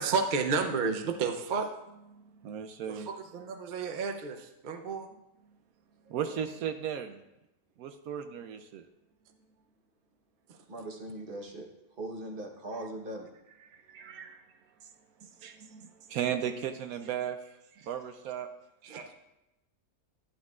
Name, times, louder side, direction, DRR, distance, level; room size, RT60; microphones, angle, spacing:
voice 1, 0.0-1.7 2.9-5.1 18.8-19.1, right 5 dB, 55° right, 5 dB, 0.5 m, -31 dB
voice 2, 2.1-3.1 6.1-7.2 7.8-8.8 13.7-14.4 15.2-17.4 17.8-18.5, right 9 dB, 75° right, 8 dB, 1.0 m, -36 dB
voice 3, 10.7-13.5, right 1 dB, 40° right, 2 dB, 1.2 m, -41 dB
11.5 x 10.0 x 2.4 m, 0.91 s
omnidirectional pair, 1.6 m